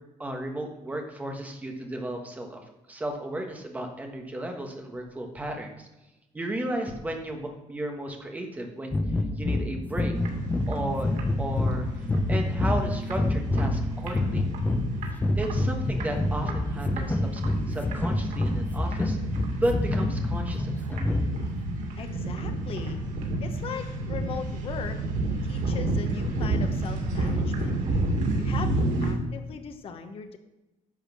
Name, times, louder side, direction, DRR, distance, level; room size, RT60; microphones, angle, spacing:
voice 1, 0.2-2.6 2.9-5.9 6.3-9.0 9.4-10.1 10.7-11.1 11.4-11.9 12.3-14.5 15.4-17.4 17.7-19.2 19.6-21.0, right 1 dB, 10° right, 3 dB, 1.4 m, -34 dB
sound 1, 8.9-21.6, left 2 dB, 15° left, 0.7 m, -27 dB
sound 2, 10.1-29.1, right 2 dB, 85° right, 2.6 m, -31 dB
voice 2, 22.0-23.0 23.4-25.0 25.4-27.7 28.4-30.4, left 6 dB, 45° left, 6 dB, 1.0 m, -39 dB
11.0 x 6.4 x 6.1 m, 1.0 s
cardioid pair, 180°, 13 cm